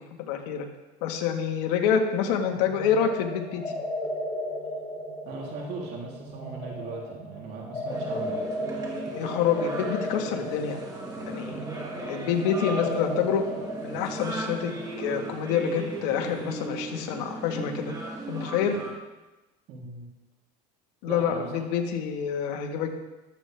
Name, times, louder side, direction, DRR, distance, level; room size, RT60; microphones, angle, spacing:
voice 1, 0.2-0.7 1.0-3.6 9.1-10.8 11.3-11.6 12.1-13.5 13.8-17.9 18.3-18.8 21.0-22.9, left 7 dB, 80° left, 3 dB, 1.8 m, -27 dB
sound 1, 2.4-16.0, left 1 dB, 25° left, 4.6 m, -35 dB
voice 2, 5.2-8.4 19.7-20.1 21.0-21.5, right 4 dB, 55° right, -3 dB, 3.4 m, -38 dB
sound 2, 7.9-18.9, right 2 dB, 20° right, 2.5 m, -37 dB
14.5 x 12.5 x 3.5 m, 1.1 s
supercardioid pair, 125°, 20 cm